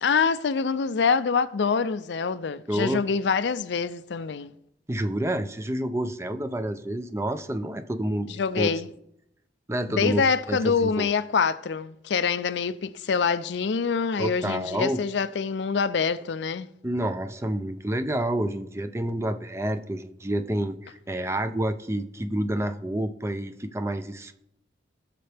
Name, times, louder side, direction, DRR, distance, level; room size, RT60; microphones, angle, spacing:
voice 1, 0.0-4.5 8.3-8.9 9.9-16.7, left 5 dB, 75° left, 0.5 m, -25 dB
voice 2, 2.7-3.0 4.9-8.3 8.6-8.7 9.7-10.2 10.5-11.1 14.2-15.0 16.8-24.4, right 1 dB, 15° right, 0.5 m, -28 dB
19.0 x 6.7 x 3.4 m
head